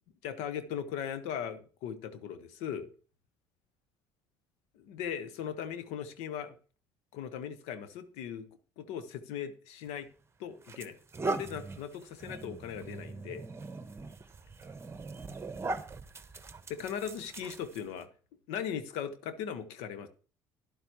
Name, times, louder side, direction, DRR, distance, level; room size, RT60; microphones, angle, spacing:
voice 1, 0.2-2.9 4.8-6.5 7.1-8.5 8.8-10.1 10.4-11.0 11.3-13.4 16.7-18.1 18.5-20.1, left 8 dB, 75° left, 11 dB, 1.1 m, -38 dB
sound 1, 9.9-10.0 10.6-18.0, right 3 dB, 25° right, 1.2 m, -40 dB
12.0 x 11.0 x 3.0 m, 0.38 s
hypercardioid pair, 65°, 11 cm